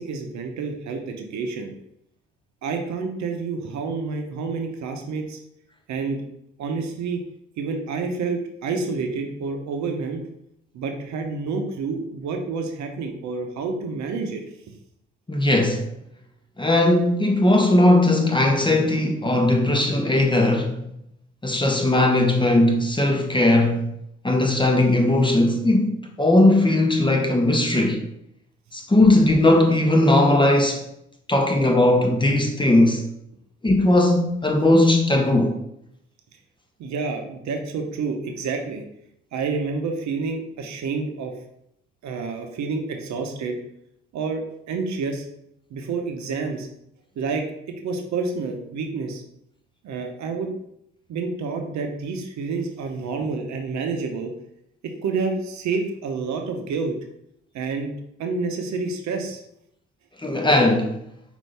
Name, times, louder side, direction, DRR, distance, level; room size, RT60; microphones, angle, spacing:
voice 1, 0.0-1.7 2.6-5.4 5.9-6.2 6.6-7.2 7.6-10.2 10.7-14.4 14.7-14.8 36.8-38.9 39.3-41.4 42.0-43.6 44.1-45.3 45.7-46.7 47.2-49.2 49.8-50.5 51.1-54.3 54.8-56.9 57.5-57.9 58.2-59.4, right 4 dB, 65° right, 0.8 m, -28 dB
voice 2, 15.3-15.8 16.6-20.8 21.4-23.9 24.2-28.0 28.7-30.8 31.3-33.0 33.6-35.5 60.2-60.9, left 1 dB, 15° left, 1.0 m, -18 dB
5.3 x 2.7 x 3.3 m
hypercardioid pair, 50°, 30 cm